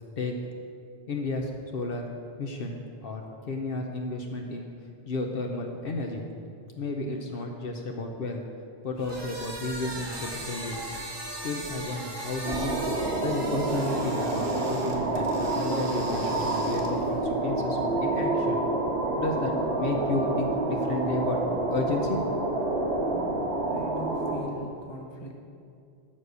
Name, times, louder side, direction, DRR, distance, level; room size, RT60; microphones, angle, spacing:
voice 1, 1.1-2.1 2.4-4.7 5.1-6.2 6.8-8.4 8.8-10.8 11.3-12.8 13.2-18.6 19.2-21.4 21.7-22.2 22.5-22.6, left 2 dB, 65° left, 2 dB, 0.9 m, -32 dB
sound 1, 9.0-17.2, right 1 dB, 25° right, 1.1 m, -39 dB
sound 2, 12.4-24.4, right 2 dB, 75° right, 1.4 m, -28 dB
voice 2, 23.4-25.4, equal, 25° left, 1 dB, 0.9 m, -41 dB
7.4 x 6.7 x 6.2 m, 2.5 s
omnidirectional pair, 1.1 m